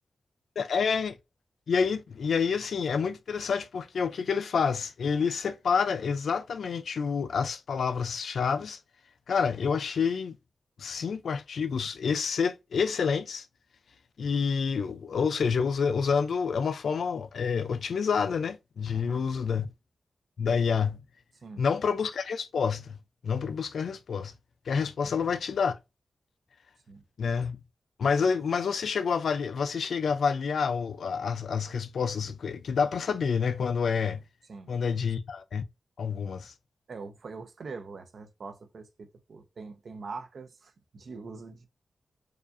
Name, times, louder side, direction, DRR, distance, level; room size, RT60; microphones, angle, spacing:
voice 1, 0.6-1.2 1.7-8.8 9.3-10.4 10.8-13.5 14.2-19.7 20.4-21.0 21.6-24.3 24.7-25.8 27.2-27.6 28.0-34.2 34.7-35.6 36.0-36.5, left 6 dB, 85° left, 0.4 m, -28 dB
voice 2, 36.9-41.7, right 4 dB, 70° right, 0.7 m, -43 dB
4.8 x 2.4 x 2.5 m
wide cardioid pair, 105°, 0 cm